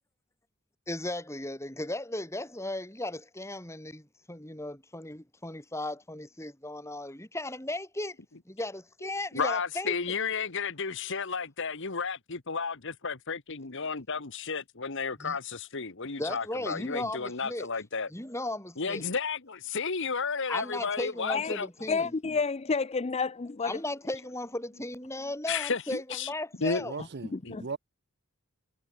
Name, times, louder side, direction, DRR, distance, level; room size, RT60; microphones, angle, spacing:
voice 1, 0.9-8.1 8.5-9.9 15.2-15.4 16.2-17.7 18.1-19.0 20.5-22.1 23.6-26.9, left 1 dB, 10° left, 4.5 m, -36 dB
voice 2, 9.3-18.1 18.8-21.7 25.5-26.3 26.6-26.8 27.4-27.6, left 5 dB, 55° left, 1.5 m, -32 dB
voice 3, 21.9-23.7 27.3-27.7, left 4 dB, 30° left, 0.5 m, -30 dB
voice 4, 26.8-27.8, right 4 dB, 50° right, 0.6 m, -38 dB
head